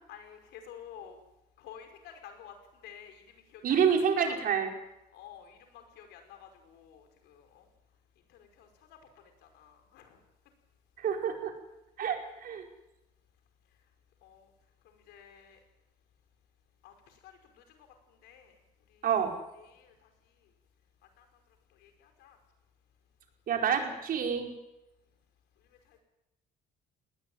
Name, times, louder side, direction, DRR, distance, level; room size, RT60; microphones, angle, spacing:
voice 1, 0.1-1.2 1.6-2.5 2.8-3.2 3.5-4.4 5.1-7.6 8.6-8.7 9.5-10.2 14.2-14.5 15.1-15.6 16.8-16.9 17.2-17.3 17.8-17.9 18.2-18.5 19.5-19.9 21.2-21.3 21.8-22.4, left 9 dB, 85° left, 6 dB, 5.3 m, -50 dB
voice 2, 3.6-4.7 11.0-11.5 12.0-12.6 19.0-19.3 23.5-24.5, right 7 dB, 60° right, 3 dB, 4.8 m, -28 dB
20.5 x 18.5 x 9.3 m, 0.95 s
cardioid pair, 110°, 17 cm